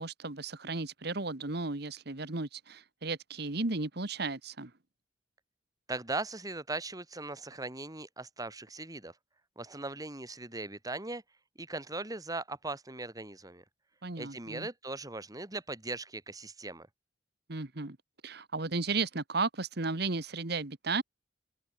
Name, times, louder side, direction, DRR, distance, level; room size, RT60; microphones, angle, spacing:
voice 1, 0.0-4.7 14.0-14.7 17.5-18.0 18.2-21.0, right 3 dB, 60° right, 1.8 m, -34 dB
voice 2, 5.9-9.1 9.6-11.2 11.6-13.6 14.2-16.9, right 2 dB, 20° right, 2.5 m, -39 dB
open air
head